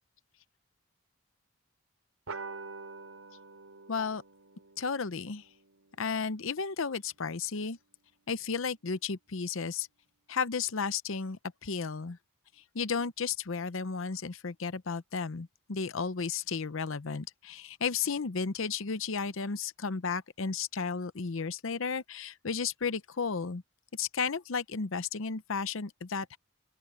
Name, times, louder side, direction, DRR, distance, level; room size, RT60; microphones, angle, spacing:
sound 1, 2.3-7.2, right 4 dB, 80° right, 3.3 m, -47 dB
voice 1, 3.9-4.2 4.8-5.5 6.0-7.8 8.3-9.9 10.3-12.2 12.7-23.6 23.9-26.4, left 5 dB, 65° left, 0.7 m, -33 dB
open air
head